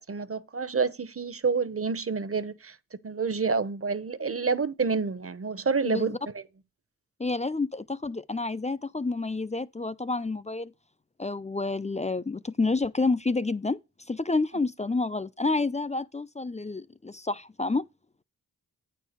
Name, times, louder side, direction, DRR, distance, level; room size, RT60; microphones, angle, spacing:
voice 1, 0.0-2.7 3.0-6.4, right 5 dB, 35° right, 0.9 m, -28 dB
voice 2, 5.8-6.2 7.2-10.7 11.2-13.8 14.1-17.9, left 3 dB, 20° left, 0.5 m, -29 dB
8.8 x 4.6 x 6.5 m
cardioid pair, 40°, 38 cm